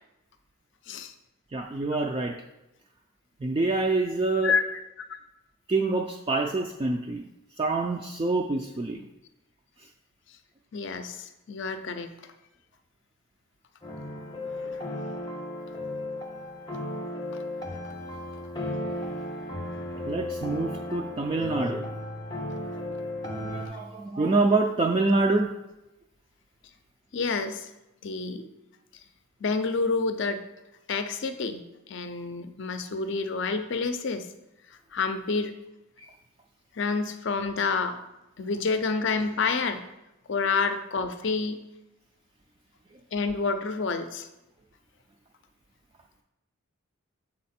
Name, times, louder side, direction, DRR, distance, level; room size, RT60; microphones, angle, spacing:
voice 1, 1.5-2.3 3.4-4.5 5.7-7.3 7.6-9.0 20.1-21.9 23.4-25.5 36.0-36.1, right 3 dB, 25° right, 1 dB, 0.3 m, -26 dB
voice 2, 4.4-4.8 5.1-5.2 10.7-12.1 14.3-15.0 27.1-27.7 28.0-28.4 29.4-30.4 30.9-31.6 31.9-34.3 34.9-35.5 36.7-38.0 38.4-39.8 40.3-41.6 43.1-44.3, left 4 dB, 55° left, 9 dB, 0.5 m, -28 dB
sound 1, 13.8-23.7, left 1 dB, 20° left, 0.7 m, -35 dB
6.5 x 4.3 x 4.2 m, 0.96 s
head